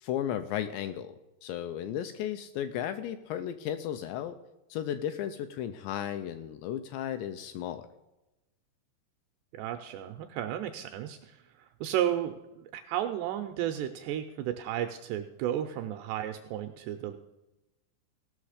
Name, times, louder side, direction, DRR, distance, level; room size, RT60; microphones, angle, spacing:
voice 1, 0.0-4.4 4.7-7.9, left 10 dB, 85° left, 9 dB, 2.5 m, -34 dB
voice 2, 9.5-17.2, right 11 dB, 85° right, 6 dB, 2.4 m, -33 dB
17.0 x 6.3 x 4.9 m, 0.97 s
omnidirectional pair, 5.3 m